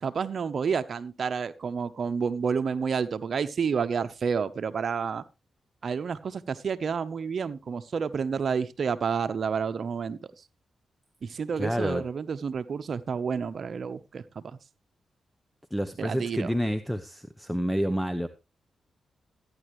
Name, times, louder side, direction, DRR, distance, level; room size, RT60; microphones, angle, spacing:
voice 1, 0.0-5.2 5.8-10.5 11.2-14.6 16.0-16.6, right 6 dB, 60° right, 12 dB, 0.9 m, -30 dB
voice 2, 11.6-12.0 15.7-18.3, equal, 5° left, 11 dB, 0.9 m, -28 dB
14.5 x 9.8 x 3.2 m, 0.27 s
cardioid pair, 60°, 0 cm